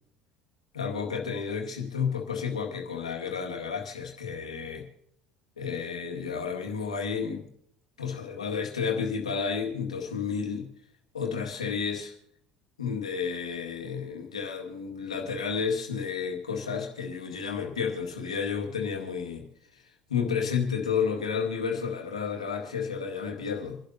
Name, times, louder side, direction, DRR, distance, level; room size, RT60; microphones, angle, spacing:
voice 1, 0.7-4.9 5.6-7.5 8.0-10.7 11.1-12.1 12.8-19.5 19.7-19.8 20.1-23.8, left 6 dB, 85° left, 1 dB, 2.0 m, -31 dB
27.5 x 11.5 x 2.8 m, 0.70 s
figure-of-eight pair, 65°, 3 cm